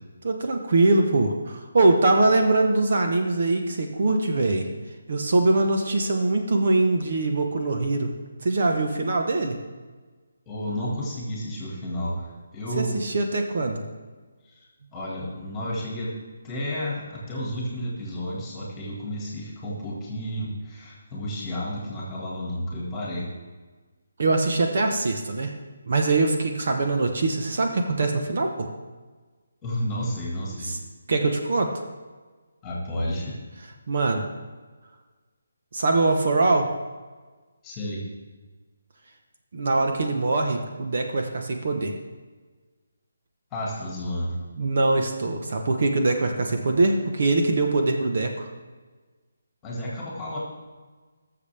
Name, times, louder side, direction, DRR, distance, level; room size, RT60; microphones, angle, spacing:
voice 1, 0.2-4.7 5.1-8.1 8.4-9.6 12.8-13.8 24.2-25.5 25.9-28.7 30.6-30.8 31.1-31.7 33.9-34.2 35.7-36.7 39.5-41.9 44.6-48.5, right 2 dB, 45° right, 4 dB, 1.0 m, -22 dB
voice 2, 10.5-13.0 14.4-14.5 14.9-16.2 16.4-23.3 29.6-30.7 32.6-33.4 37.6-38.0 43.5-44.4 49.6-50.4, equal, 10° left, -4 dB, 1.9 m, -31 dB
19.0 x 6.9 x 3.4 m, 1.4 s
hypercardioid pair, 175°, 0 cm